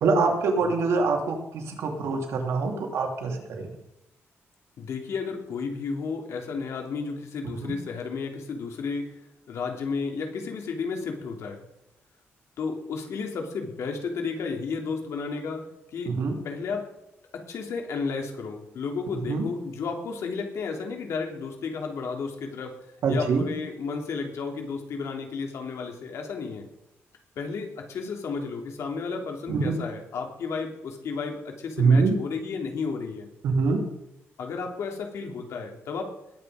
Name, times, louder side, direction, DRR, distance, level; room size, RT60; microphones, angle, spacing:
voice 1, 0.0-3.7 7.6-7.8 16.1-16.4 19.3-19.5 23.0-23.5 29.5-29.7 31.8-32.1 33.4-33.8, right 4 dB, 80° right, 2 dB, 3.0 m, -24 dB
voice 2, 4.8-9.1 9.5-11.6 12.6-15.6 15.9-16.1 16.4-16.8 17.3-22.7 23.1-26.7 27.3-33.3 34.4-36.1, left 5 dB, 75° left, 3 dB, 3.0 m, -32 dB
20.0 x 8.8 x 5.0 m, 0.86 s
cardioid pair, 135°, 5 cm